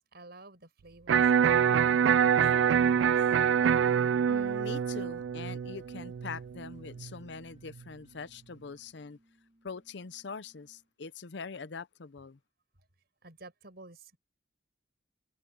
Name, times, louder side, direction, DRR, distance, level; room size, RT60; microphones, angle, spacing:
voice 1, 0.1-3.2 13.2-14.2, right 2 dB, 60° right, 6.0 m, -53 dB
Electric guitar, 1.1-7.1, right 8 dB, 75° right, 0.4 m, -25 dB
sound 1, 1.8-11.0, right 1 dB, 30° right, 4.8 m, -64 dB
voice 2, 4.3-9.2 9.6-12.4, left 5 dB, 65° left, 0.7 m, -43 dB
head